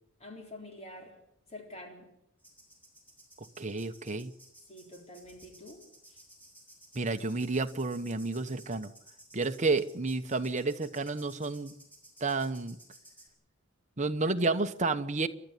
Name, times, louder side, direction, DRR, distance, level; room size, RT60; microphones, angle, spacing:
voice 1, 0.2-1.1 1.5-2.1 4.7-5.8 6.1-6.2, left 1 dB, 30° left, 3.9 m, -47 dB
sound 1, 2.4-13.3, right 1 dB, 10° left, 6.0 m, -57 dB
voice 2, 3.6-4.3 6.9-8.9 9.3-11.7 12.2-12.8 14.0-15.3, right 3 dB, 35° right, 1.1 m, -30 dB
29.0 x 12.0 x 8.4 m
head